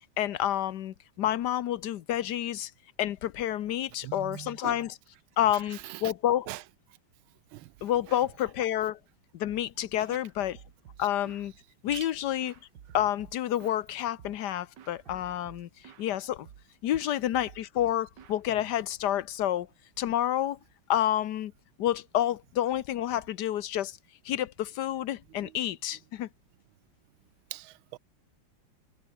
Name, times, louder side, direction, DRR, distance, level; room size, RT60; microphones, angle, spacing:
voice 1, 0.2-2.7 3.0-5.0 5.4-6.5 7.8-9.0 9.3-10.6 11.0-11.5 11.8-12.5 12.9-15.7 16.0-16.5 16.8-19.7 20.0-20.6 20.9-21.5 21.8-24.0 24.2-26.3, left 12 dB, 65° left, 1.3 m, -29 dB
voice 2, 4.0-4.8 5.9-6.0 6.5-6.6 7.5-7.7 27.5-28.0, right 17 dB, 80° right, 1.4 m, -41 dB
sound 1, 9.5-9.8 10.1-11.5 11.9-13.8 14.2-14.5 14.8-16.1 16.4-16.7 17.0-19.1, right 9 dB, 60° right, 1.8 m, -52 dB
sound 2, 10.3-10.4 10.9-11.0 11.2-11.3 11.6-15.4, right 5 dB, 30° right, 1.4 m, -51 dB
omnidirectional pair, 2.2 m